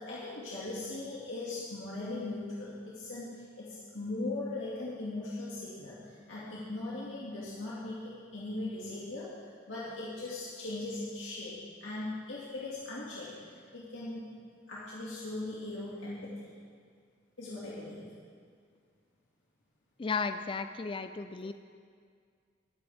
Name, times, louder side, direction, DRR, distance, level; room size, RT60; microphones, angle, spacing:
voice 1, 0.0-14.3 14.7-16.5 17.4-18.1, left 2 dB, 70° left, -8 dB, 2.3 m, -39 dB
voice 2, 20.0-21.5, left 4 dB, 25° left, 9 dB, 0.4 m, -34 dB
21.5 x 9.8 x 3.5 m, 2.1 s
head